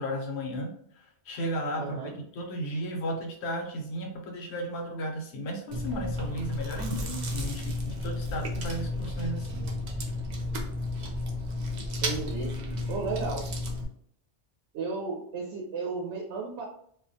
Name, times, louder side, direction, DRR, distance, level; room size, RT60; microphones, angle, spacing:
voice 1, 0.0-9.7, equal, 70° left, 1 dB, 0.9 m, -34 dB
voice 2, 1.8-2.1 12.0-12.5 12.9-13.5 14.7-16.6, right 4 dB, 75° right, -1 dB, 0.9 m, -34 dB
Chewing mastication, 5.7-13.9, left 1 dB, 55° right, 0.5 m, -33 dB
2.3 x 2.1 x 2.6 m, 0.64 s
omnidirectional pair, 1.2 m